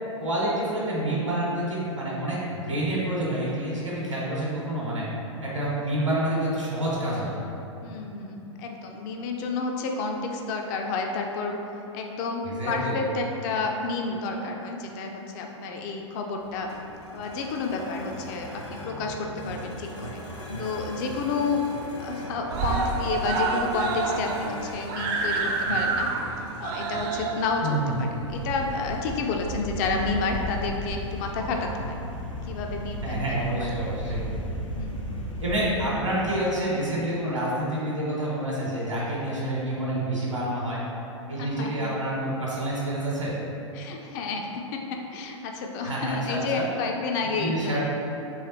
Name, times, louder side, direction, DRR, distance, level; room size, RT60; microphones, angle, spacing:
voice 1, 0.2-5.0 5.4-7.4 12.4-13.0 27.6-28.0 33.0-34.2 35.4-40.8 41.3-43.3 45.8-46.7 47.4-47.9, right 1 dB, 75° right, -6 dB, 1.0 m, -28 dB
voice 2, 7.8-11.6 11.9-16.7 17.1-20.2 20.6-21.6 22.0-26.1 26.6-32.0 32.5-33.0 33.6-34.1 34.8-35.1 41.4-41.9 43.7-47.9, left 4 dB, 35° left, 2 dB, 0.4 m, -30 dB
sound 1, 16.4-36.3, equal, 65° left, 0.9 m, -41 dB
Screaming, 19.6-20.5 20.9-21.0 21.3-21.4 21.7-22.2 22.5-29.3 30.1-30.2, right 4 dB, 40° right, 0.4 m, -29 dB
sound 2, 28.3-35.8, equal, 85° left, 0.6 m, -34 dB
3.5 x 3.2 x 4.2 m, 2.9 s
figure-of-eight pair, 95°, 16 cm